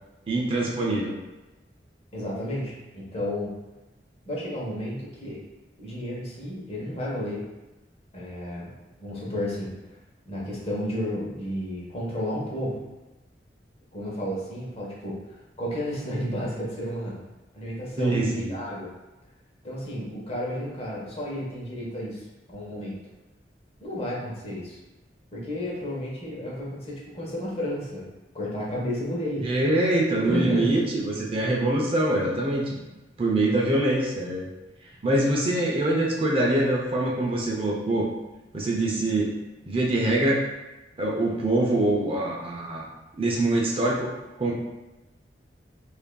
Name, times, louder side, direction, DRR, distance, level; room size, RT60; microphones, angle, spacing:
voice 1, 0.3-1.2 18.0-18.5 29.4-32.8 33.2-34.5 35.0-38.1 38.5-39.3 39.7-40.4 41.0-42.8 43.2-44.1 44.4-44.5, right 1 dB, 30° right, -2 dB, 0.5 m, -24 dB
voice 2, 2.1-3.6 4.3-5.4 5.8-7.4 8.1-8.7 9.0-9.7 10.3-12.8 13.9-15.2 15.6-17.2 17.5-18.9 19.6-22.9 23.8-24.8 25.3-28.1 28.3-29.5 30.1-30.8, equal, 35° left, -4 dB, 1.0 m, -32 dB
5.4 x 2.6 x 2.2 m, 1.1 s
head